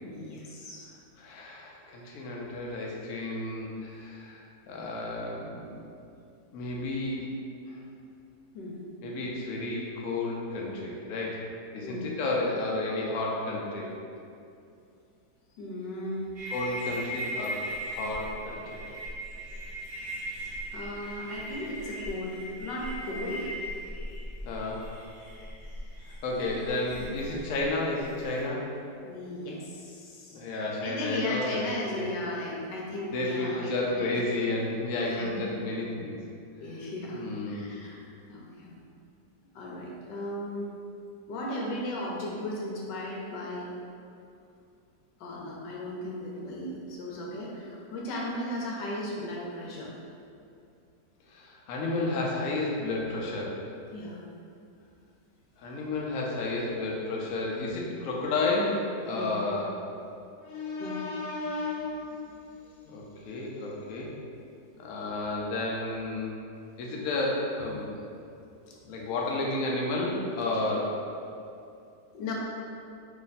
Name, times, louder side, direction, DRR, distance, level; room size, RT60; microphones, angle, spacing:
voice 1, 0.0-0.9 8.5-8.8 11.8-12.1 15.6-16.3 20.4-23.5 27.0-27.1 29.0-34.1 35.0-35.5 36.6-38.0 38.3-38.8 39.5-40.6 41.3-43.7 45.2-49.9 53.9-54.2 59.1-59.3 60.8-61.0 68.6-69.0 72.1-72.3, left 1 dB, 85° left, -3 dB, 1.3 m, -36 dB
voice 2, 1.2-5.8 6.5-7.3 7.7-7.8 9.0-11.4 11.7-13.9 16.5-18.8 24.5-24.9 26.2-28.6 30.3-31.6 31.9-32.0 33.1-36.2 37.1-37.6 51.3-53.6 55.6-59.7 60.4-62.4 62.9-64.1 64.8-66.3 66.8-68.0 68.8-70.9, left 2 dB, 70° left, -3 dB, 0.9 m, -32 dB
sound 1, 16.3-28.4, equal, 25° right, 0.8 m, -39 dB
3.0 x 2.6 x 4.0 m, 2.5 s
omnidirectional pair, 1.8 m